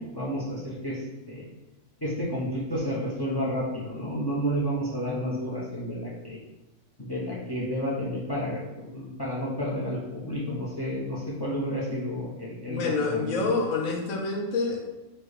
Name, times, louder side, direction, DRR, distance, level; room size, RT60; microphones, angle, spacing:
voice 1, 0.0-1.4 2.0-6.4 7.0-13.4, equal, 25° left, -5 dB, 0.6 m, -31 dB
voice 2, 12.7-14.8, left 4 dB, 65° left, 0 dB, 1.2 m, -27 dB
4.5 x 2.3 x 4.8 m, 1.0 s
omnidirectional pair, 1.5 m